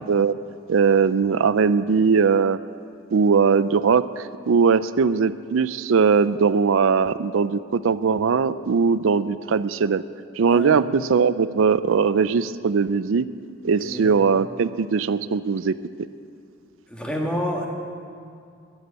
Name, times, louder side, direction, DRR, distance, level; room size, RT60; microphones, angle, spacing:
voice 1, 0.7-2.6 3.1-10.0 10.4-13.2 13.6-15.7, right 5 dB, 85° right, 15 dB, 0.4 m, -20 dB
voice 2, 10.5-10.8 13.8-14.2 16.9-17.7, equal, 5° left, -1 dB, 1.9 m, -28 dB
15.0 x 11.5 x 8.2 m, 2.3 s
head